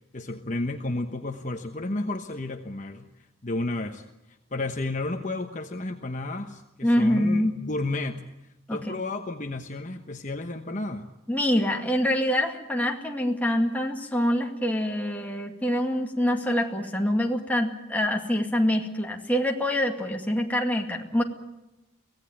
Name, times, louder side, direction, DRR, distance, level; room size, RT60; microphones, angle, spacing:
voice 1, 0.1-3.1 3.4-8.2 8.7-11.1, left 2 dB, 40° left, 5 dB, 1.1 m, -32 dB
voice 2, 6.8-7.5 8.7-8.9 11.3-21.2, left 1 dB, 10° left, 1 dB, 2.2 m, -25 dB
24.0 x 17.5 x 9.1 m, 0.97 s
head